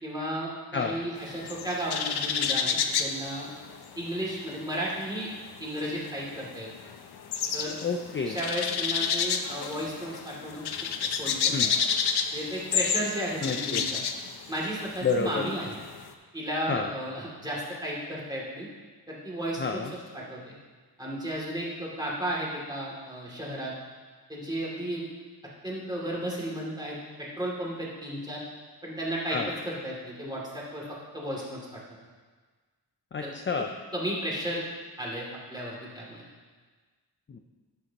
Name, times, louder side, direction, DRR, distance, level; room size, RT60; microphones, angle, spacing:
voice 1, 0.0-3.5 4.0-5.3 5.6-6.7 7.5-7.7 8.2-10.6 11.0-11.7 12.3-14.0 14.5-15.8 16.3-18.7 19.1-20.5 21.0-23.7 24.3-25.1 25.6-28.4 28.8-30.9 31.1-31.8 33.2-33.3 33.9-34.6 35.0-36.2, right 1 dB, 10° right, -5 dB, 2.6 m, -34 dB
sound 1, 1.2-4.3 4.5-16.1, left 6 dB, 70° left, 0.7 m, -30 dB
voice 2, 7.8-8.4 11.5-11.7 13.4-13.8 15.0-15.5 16.7-16.9 19.6-19.9 29.3-29.5 33.1-33.7 37.3-37.4, left 5 dB, 30° left, 4 dB, 0.5 m, -29 dB
11.0 x 8.0 x 3.0 m, 1.4 s
wide cardioid pair, 95°, 40 cm